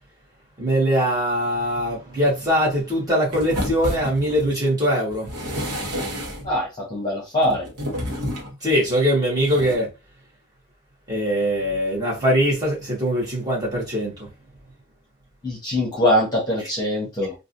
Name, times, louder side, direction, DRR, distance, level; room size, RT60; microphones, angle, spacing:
voice 1, 0.6-5.3 8.6-9.9 11.1-14.3, equal, 15° right, 1.6 m, -22 dB
Cardboard Box Slides and Rustling, 3.3-4.5 5.1-6.6 7.4-8.6 9.5-9.7, equal, 90° right, 1.0 m, -29 dB
voice 2, 6.4-7.7 15.4-17.3, left 1 dB, 20° left, 1.1 m, -22 dB
3.6 x 2.5 x 2.6 m
head